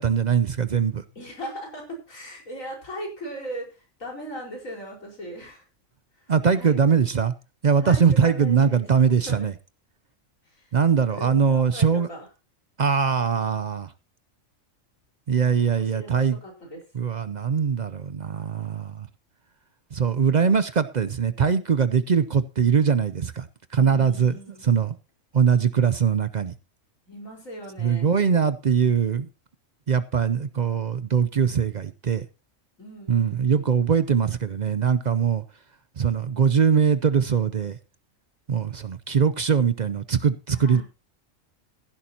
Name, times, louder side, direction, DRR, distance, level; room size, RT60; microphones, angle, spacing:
voice 1, 0.0-1.0 6.3-7.3 7.6-9.5 10.7-12.1 12.8-13.9 15.3-16.4 16.9-19.1 19.9-24.4 24.6-24.9 25.3-26.5 27.8-29.3 29.9-32.2 33.1-35.4 36.0-37.8 38.5-40.8, right 6 dB, 45° right, 14 dB, 0.6 m, -22 dB
voice 2, 1.2-5.7 6.1-6.3 6.5-6.7 7.8-9.5 10.4-12.3 15.7-16.8 23.7-24.7 27.1-28.1 32.8-33.6 40.5-40.8, right 1 dB, 85° left, 0 dB, 5.3 m, -39 dB
15.5 x 11.0 x 2.9 m, 0.30 s
omnidirectional pair, 1.3 m